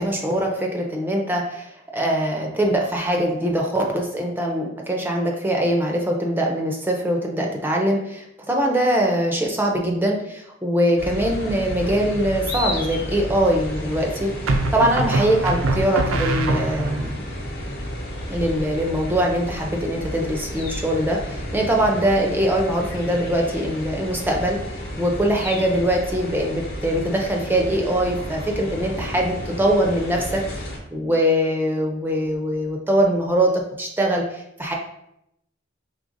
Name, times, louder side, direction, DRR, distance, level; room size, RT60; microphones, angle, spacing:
voice 1, 0.0-14.3 14.7-17.1 18.3-24.6 25.0-34.7, right 1 dB, 10° right, 1 dB, 0.4 m, -22 dB
sound 1, 11.0-30.8, equal, 50° left, 0.9 m, -32 dB
sound 2, 11.8-12.4 14.5-17.1, right 2 dB, 85° right, 0.5 m, -24 dB
5.0 x 3.2 x 2.5 m, 0.79 s
head